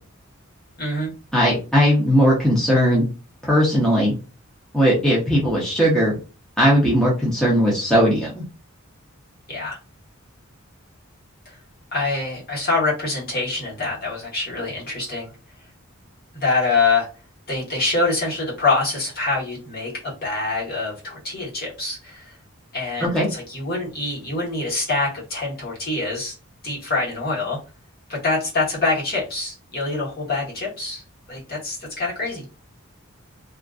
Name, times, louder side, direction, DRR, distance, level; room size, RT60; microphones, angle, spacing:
voice 1, 0.8-1.1 9.5-9.8 11.4-11.6 11.9-15.3 16.3-17.1 17.5-22.4 22.7-26.3 26.6-27.6 28.1-31.0 31.3-32.4, left 3 dB, 45° left, -5 dB, 1.2 m, -25 dB
voice 2, 1.3-3.0 3.4-4.1 4.7-6.1 6.6-8.4 23.0-23.3, equal, 5° left, -6 dB, 0.6 m, -18 dB
2.5 x 2.3 x 2.3 m, 0.33 s
head